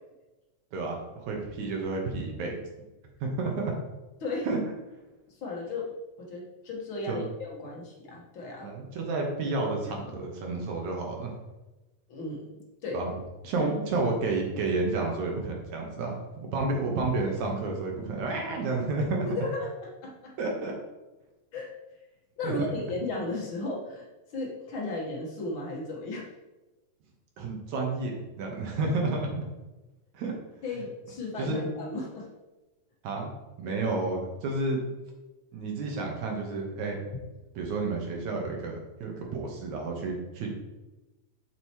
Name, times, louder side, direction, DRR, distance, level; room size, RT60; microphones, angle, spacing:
voice 1, 0.7-2.6 3.2-3.7 4.4-4.6 7.1-7.3 8.6-11.3 12.9-13.1 13.4-19.3 20.4-20.7 22.4-22.5 27.4-29.4 30.1-30.3 31.4-31.7 33.0-33.3 33.6-34.8 35.5-37.0 37.6-40.5, right 3 dB, 65° right, 0 dB, 2.2 m, -30 dB
voice 2, 5.4-5.9 6.2-8.7 12.1-12.5 12.8-13.0 13.6-13.7 19.2-19.7 20.0-20.3 21.5-21.7 22.4-24.1 24.3-26.3 30.6-32.3, left 2 dB, 60° left, -3 dB, 1.3 m, -34 dB
7.6 x 6.5 x 2.9 m, 1.1 s
omnidirectional pair, 4.0 m